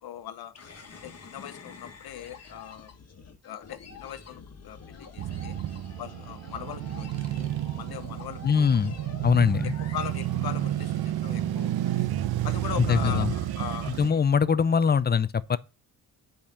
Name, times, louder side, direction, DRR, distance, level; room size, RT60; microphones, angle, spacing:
voice 1, 0.0-0.5 1.0-2.9 3.4-5.6 6.0-8.8 9.2-9.3 9.9-12.1 12.4-14.2, left 10 dB, 75° left, 1.1 m, -40 dB
sound 1, 0.6-11.2, left 5 dB, 45° left, 1.5 m, -48 dB
sound 2, 4.8-12.1, left 2 dB, 5° left, 2.4 m, -57 dB
Male speech man speaking / Motorcycle / Idling, 5.2-14.1, right 13 dB, 80° right, 0.8 m, -30 dB
voice 2, 8.4-8.9 9.2-9.7 12.9-13.3 14.0-15.6, left 6 dB, 25° left, 0.5 m, -22 dB
8.3 x 5.1 x 7.2 m
cardioid pair, 115°, 37 cm